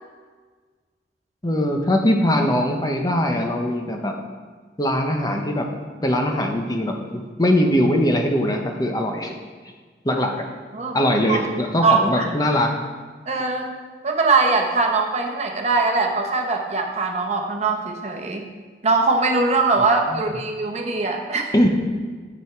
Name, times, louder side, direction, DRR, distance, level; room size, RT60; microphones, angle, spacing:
voice 1, 1.4-4.1 4.8-5.7 6.0-9.3 10.0-10.5 10.9-12.8 20.1-20.3 21.5-21.7, left 1 dB, 20° left, 3 dB, 0.8 m, -21 dB
voice 2, 10.7-11.5 11.8-12.3 13.3-13.8 14.0-18.5 18.8-21.5, right 3 dB, 40° right, 2 dB, 1.0 m, -21 dB
8.9 x 8.2 x 4.5 m, 1.5 s
head